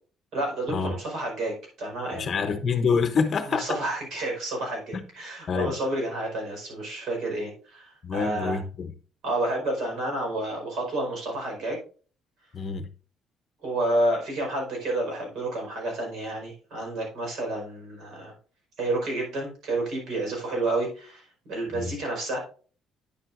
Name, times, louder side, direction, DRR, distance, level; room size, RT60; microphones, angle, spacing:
voice 1, 0.3-2.4 3.5-8.6 9.2-11.8 13.6-18.3 18.8-22.4, right 1 dB, 65° right, 4.8 m, -30 dB
voice 2, 2.1-3.8 4.9-5.0 5.5-5.8 8.0-8.9 12.5-12.9 21.7-21.9, left 5 dB, 40° left, 0.8 m, -27 dB
9.7 x 7.3 x 2.5 m
cardioid pair, 140°, 0 cm